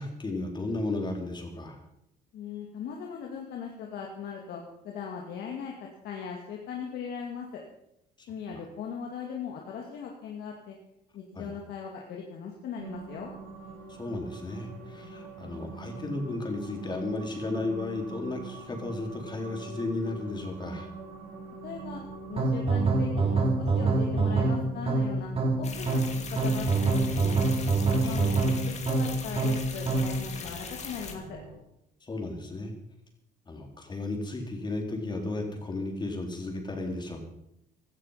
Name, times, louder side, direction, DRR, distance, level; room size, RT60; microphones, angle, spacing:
voice 1, 0.0-1.8 8.2-8.6 11.3-11.5 13.9-20.9 27.9-28.2 30.4-30.6 32.0-32.7 33.5-37.2, left 2 dB, 25° left, 2 dB, 4.1 m, -34 dB
voice 2, 2.3-7.6 8.3-10.8 11.1-13.3 21.6-22.0 22.3-26.0 26.3-27.4 28.0-28.5 28.9-31.4, left 6 dB, 70° left, 0 dB, 2.4 m, -39 dB
sound 1, 12.8-31.6, right 4 dB, 90° right, 6.5 m, -44 dB
sound 2, 22.4-30.2, right 3 dB, 35° right, 3.2 m, -25 dB
sound 3, 25.6-31.1, left 5 dB, 40° left, 2.6 m, -41 dB
17.0 x 13.0 x 5.8 m, 0.81 s
cardioid pair, 110°, 17 cm